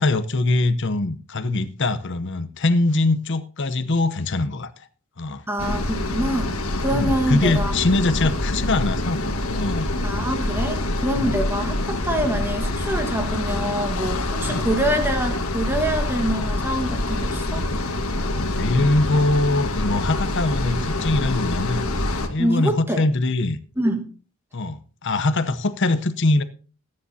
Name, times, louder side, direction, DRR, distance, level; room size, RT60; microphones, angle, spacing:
voice 1, 0.0-4.9 5.2-5.4 6.9-9.2 9.5-9.9 11.2-11.4 14.5-14.6 18.2-21.8 22.3-23.6 24.5-26.4, left 2 dB, 55° left, 0.8 m, -22 dB
voice 2, 5.5-6.5 6.8-7.7 10.0-17.7 22.4-23.0 23.8-24.0, right 1 dB, 10° right, 1.5 m, -25 dB
sound 1, 5.6-22.3, left 1 dB, 75° left, 1.6 m, -25 dB
20.5 x 9.8 x 2.8 m
head